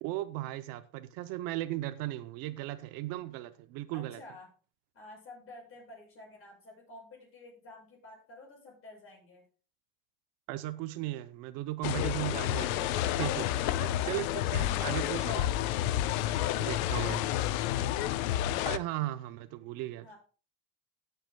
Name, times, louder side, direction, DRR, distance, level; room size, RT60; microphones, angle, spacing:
voice 1, 0.0-4.2 10.5-13.4 14.0-15.5 16.7-17.2 18.6-20.1, right 16 dB, 55° right, 0.6 m, -36 dB
voice 2, 3.9-4.5 4.9-9.4 13.1-14.2 16.2-17.5 20.0-20.2, left 2 dB, 30° left, 6.8 m, -51 dB
sound 1, 11.8-18.8, left 13 dB, 80° left, 0.8 m, -30 dB
20.0 x 7.9 x 2.2 m
cardioid pair, 155°, 42 cm